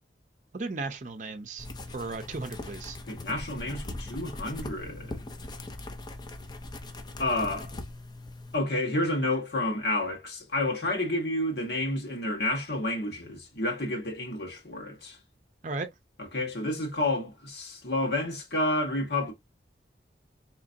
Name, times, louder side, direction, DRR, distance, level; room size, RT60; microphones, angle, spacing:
voice 1, 0.5-1.7 1.9-3.0 15.6-15.9, right 3 dB, 45° right, 0.6 m, -35 dB
sound 1, 1.6-8.6, left 2 dB, 25° left, 0.5 m, -40 dB
voice 2, 3.0-5.3 7.2-7.7 8.5-15.2 16.2-19.3, left 1 dB, 70° left, 1.6 m, -30 dB
4.0 x 3.0 x 2.6 m
head